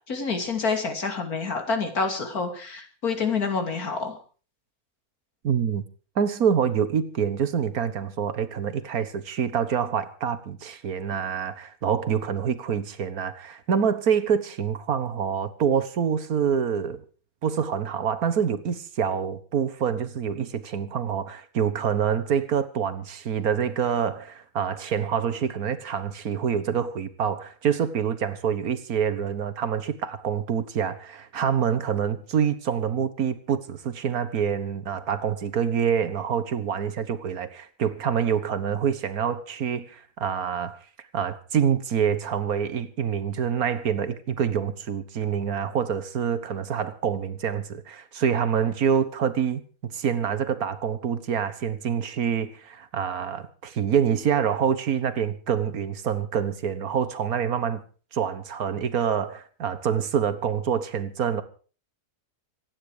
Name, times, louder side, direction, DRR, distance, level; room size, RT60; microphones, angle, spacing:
voice 1, 0.1-4.2, left 4 dB, 70° left, 3.2 m, -27 dB
voice 2, 5.4-5.8 6.2-17.0 17.4-40.8 41.1-57.8 58.1-61.4, right 7 dB, 70° right, 1.7 m, -26 dB
25.5 x 9.6 x 4.9 m
omnidirectional pair, 1.6 m